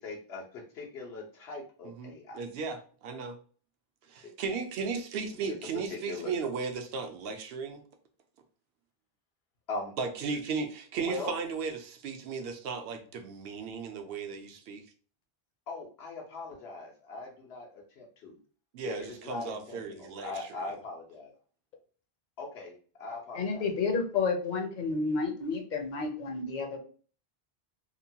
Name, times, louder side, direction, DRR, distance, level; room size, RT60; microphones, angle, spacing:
voice 1, 0.0-2.4 4.2-4.3 5.5-6.3 9.7-9.9 11.0-11.4 15.7-18.4 18.8-21.3 22.4-23.7, left 3 dB, 90° left, 0 dB, 1.1 m, -41 dB
voice 2, 1.8-3.4 4.1-7.8 10.0-14.8 18.7-20.7, right 5 dB, 75° right, 5 dB, 0.8 m, -36 dB
voice 3, 23.3-26.8, left 4 dB, 55° left, 3 dB, 0.7 m, -30 dB
2.9 x 2.2 x 2.7 m, 0.41 s
omnidirectional pair, 1.0 m